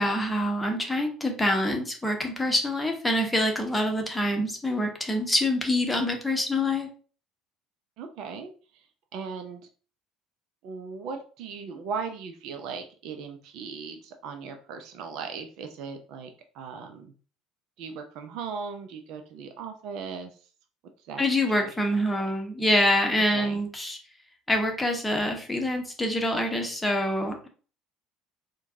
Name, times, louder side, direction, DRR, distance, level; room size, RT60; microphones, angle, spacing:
voice 1, 0.0-6.9 21.2-24.0 24.5-27.5, left 1 dB, 10° left, 3 dB, 1.0 m, -26 dB
voice 2, 8.0-8.9 9.1-9.6 10.6-16.3 16.5-17.1 17.8-20.3 21.0-21.2 21.5-21.7 23.3-23.6, right 5 dB, 60° right, 6 dB, 0.5 m, -38 dB
4.5 x 2.2 x 2.6 m, 0.39 s
figure-of-eight pair, 60°, 0 cm